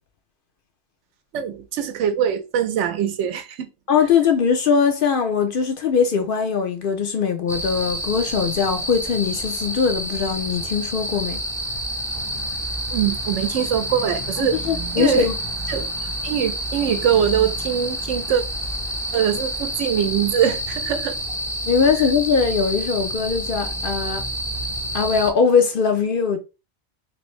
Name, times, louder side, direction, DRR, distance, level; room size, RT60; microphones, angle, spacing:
voice 1, 1.3-3.7 12.9-14.6 15.0-15.3 15.7-15.9 16.2-18.4 19.1-21.2, right 9 dB, 80° right, 0.9 m, -22 dB
voice 2, 3.9-11.4 14.4-15.3 21.6-24.3 24.9-26.4, left 6 dB, 60° left, 0.6 m, -21 dB
sound 1, 7.5-25.3, equal, 5° left, 0.3 m, -28 dB
3.1 x 2.6 x 3.0 m
omnidirectional pair, 1.2 m